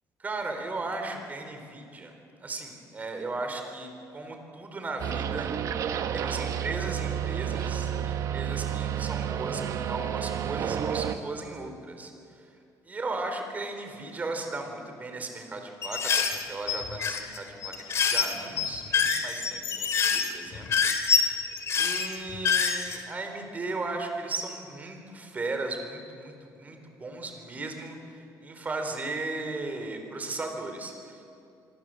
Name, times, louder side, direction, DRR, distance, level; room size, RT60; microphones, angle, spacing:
voice 1, 0.2-2.1 2.4-5.5 6.1-12.1 12.9-20.7 21.0-21.4 21.8-31.2, right 3 dB, 25° right, 5 dB, 3.9 m, -36 dB
sound 1, 5.0-11.2, right 9 dB, 50° right, 1.4 m, -30 dB
sound 2, 15.8-23.0, left 6 dB, 40° left, 2.6 m, -26 dB
26.0 x 24.5 x 7.7 m, 2.6 s
cardioid pair, 155°, 7 cm